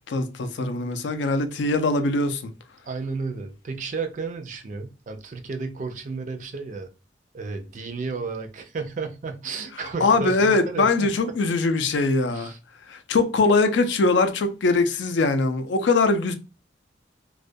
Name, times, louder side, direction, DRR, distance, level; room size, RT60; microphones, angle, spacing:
voice 1, 0.1-2.4 10.0-12.5 12.9-16.3, left 3 dB, 75° left, 0.4 m, -22 dB
voice 2, 2.8-6.9 7.3-11.3 12.3-12.6, right 4 dB, 45° right, 0.4 m, -33 dB
2.3 x 2.1 x 2.5 m
head